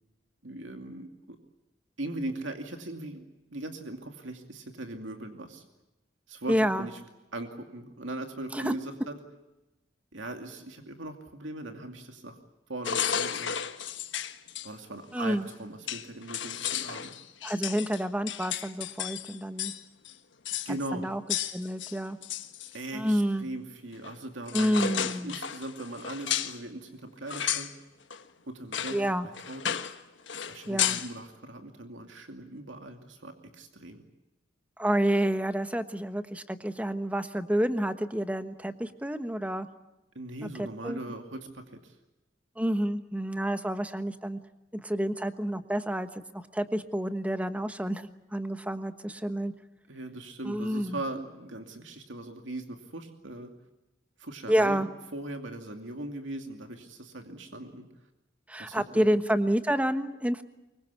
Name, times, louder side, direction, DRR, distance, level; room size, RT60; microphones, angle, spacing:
voice 1, 0.4-1.4 2.0-5.6 6.3-7.0 7.3-9.2 10.1-12.4 12.7-13.6 14.6-17.1 20.6-21.1 22.7-27.7 28.5-29.0 29.2-29.7 30.5-34.0 40.1-42.0 49.9-53.5 54.2-54.9 55.1-57.9 58.6-59.0, right 1 dB, 90° right, 5 dB, 2.5 m, -39 dB
voice 2, 6.5-6.9 8.5-8.7 15.1-15.4 17.4-19.7 20.9-21.2 21.5-22.2 22.9-23.5 24.5-25.4 28.9-29.3 30.7-31.0 34.8-39.7 40.6-41.0 42.6-44.4 44.7-49.5 50.4-51.0 54.5-54.9 58.5-60.4, equal, 5° right, 9 dB, 1.2 m, -29 dB
sound 1, 12.8-14.7 15.5-15.6 15.9-19.8 20.0-20.1 20.4-20.7 21.3-22.8 24.0-24.2 24.5-26.6 27.3-27.7 28.1-28.2 28.7-29.0 29.3-30.0 30.3-31.1, left 9 dB, 75° left, 1.4 m, -33 dB
24.5 x 23.0 x 8.3 m, 1.0 s
head